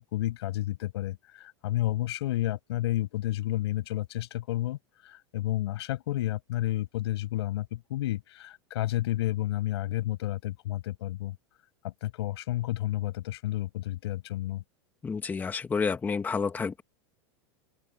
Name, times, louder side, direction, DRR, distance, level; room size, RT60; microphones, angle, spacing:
voice 1, 0.0-4.8 5.0-11.4 11.8-14.6, left 15 dB, 80° left, 6.0 m, -31 dB
voice 2, 15.0-16.8, left 5 dB, 15° left, 1.5 m, -29 dB
open air
supercardioid pair, 155°, 14 cm